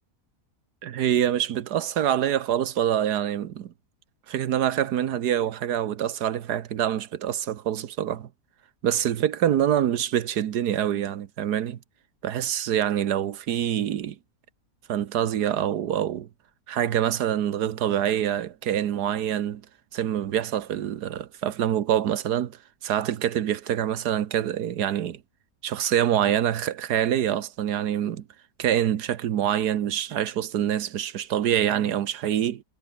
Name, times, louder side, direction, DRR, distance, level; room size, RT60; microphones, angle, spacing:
voice 1, 0.8-3.7 4.3-8.3 8.8-11.8 12.2-14.2 14.9-16.3 16.7-19.6 19.9-22.6 22.8-25.2 25.6-28.3 28.6-32.6, right 10 dB, 85° right, 1.6 m, -25 dB
omnidirectional pair, 1.7 m